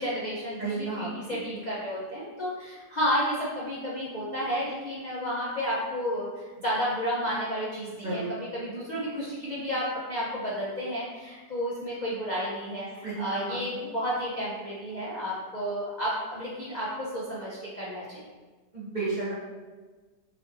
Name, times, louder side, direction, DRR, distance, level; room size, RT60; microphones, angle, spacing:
voice 1, 0.0-18.3, equal, 45° left, -8 dB, 0.6 m, -32 dB
voice 2, 0.6-1.4 8.0-8.3 13.0-13.9 18.7-19.3, right 3 dB, 40° right, -9 dB, 0.7 m, -33 dB
6.5 x 2.8 x 2.6 m, 1.3 s
omnidirectional pair, 1.7 m